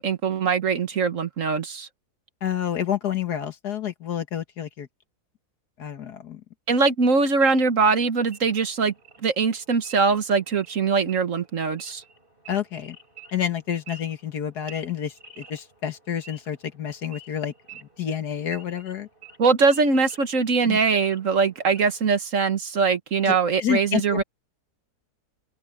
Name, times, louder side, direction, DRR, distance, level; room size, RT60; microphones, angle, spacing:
voice 1, 0.0-1.9 6.7-8.9 9.2-12.0 19.4-24.2, right 4 dB, 55° right, 1.6 m, -22 dB
voice 2, 2.4-4.9 5.8-6.4 12.5-13.0 13.3-17.5 18.0-19.1 20.6-20.8 23.2-24.2, left 9 dB, 80° left, 2.1 m, -29 dB
Wild animals / Idling, 7.4-22.1, right 4 dB, 35° right, 7.2 m, -50 dB
omnidirectional pair, 1.7 m